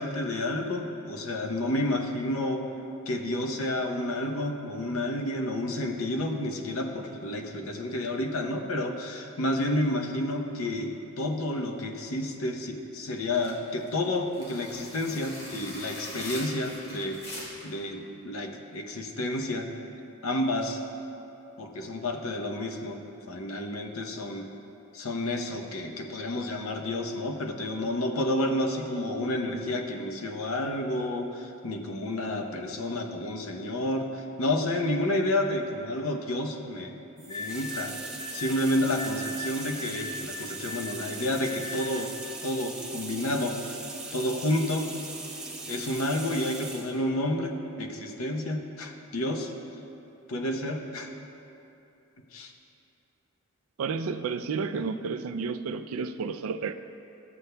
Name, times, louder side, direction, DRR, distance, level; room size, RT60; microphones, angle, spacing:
voice 1, 0.0-2.7 3.1-17.2 17.6-19.7 20.2-20.8 21.6-23.0 23.3-24.5 24.9-36.9 37.2-37.9 38.3-42.1 42.4-43.8 44.1-44.9 45.7-49.5 50.3-51.1 52.3-52.5, left 1 dB, 90° left, 3 dB, 0.8 m, -30 dB
sound 1, 13.3-17.8, left 1 dB, 50° left, 1.8 m, -42 dB
sound 2, 37.2-47.0, right 2 dB, 5° right, 1.1 m, -40 dB
sound 3, 37.3-42.2, left 2 dB, 30° left, 1.6 m, -39 dB
voice 2, 53.8-56.7, right 5 dB, 85° right, 9 dB, 0.4 m, -31 dB
13.5 x 7.9 x 2.2 m, 2.8 s
head